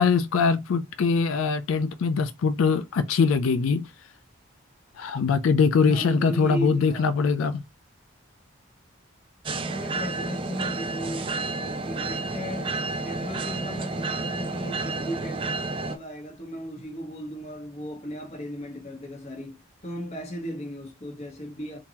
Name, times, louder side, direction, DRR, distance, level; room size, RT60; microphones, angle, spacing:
voice 1, 0.0-3.9 5.0-7.6, left 5 dB, 85° left, 0.4 m, -22 dB
voice 2, 5.8-7.2 9.6-15.5 15.8-21.8, equal, 35° left, 1.3 m, -36 dB
sound 1, 9.5-16.0, right 3 dB, 25° right, 0.3 m, -30 dB
3.7 x 2.7 x 2.9 m
head